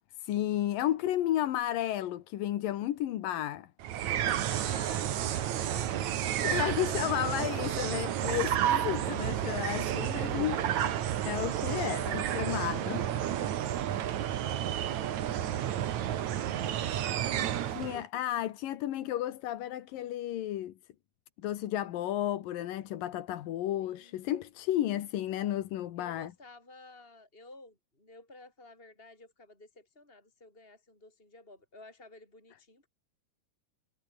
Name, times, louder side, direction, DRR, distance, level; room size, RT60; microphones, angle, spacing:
voice 1, 0.2-3.7 6.4-10.6 11.3-13.0 16.7-16.9 17.7-20.7 21.4-26.3, left 12 dB, 85° left, 3.1 m, -32 dB
sound 1, 3.8-18.0, right 11 dB, 65° right, 2.7 m, -31 dB
voice 2, 4.5-6.1 7.6-8.2 10.3-10.9 11.7-18.0 23.8-24.3 26.0-32.9, left 2 dB, 15° left, 6.5 m, -54 dB
omnidirectional pair, 3.8 m